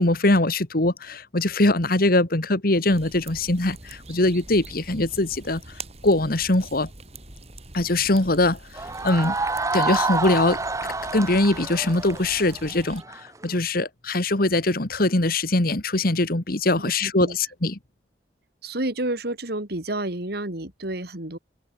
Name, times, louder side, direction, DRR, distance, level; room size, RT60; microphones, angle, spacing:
voice 1, 0.0-5.6 6.0-6.9 7.7-8.6 9.0-9.4 9.7-10.6 11.1-17.8, left 2 dB, 55° left, 2.1 m, -22 dB
sound 1, 2.9-13.0, right 2 dB, 35° right, 4.4 m, -44 dB
sound 2, 8.7-13.5, right 3 dB, 20° right, 1.1 m, -28 dB
voice 2, 17.0-17.4 18.6-21.4, right 1 dB, 60° right, 3.2 m, -30 dB
open air
head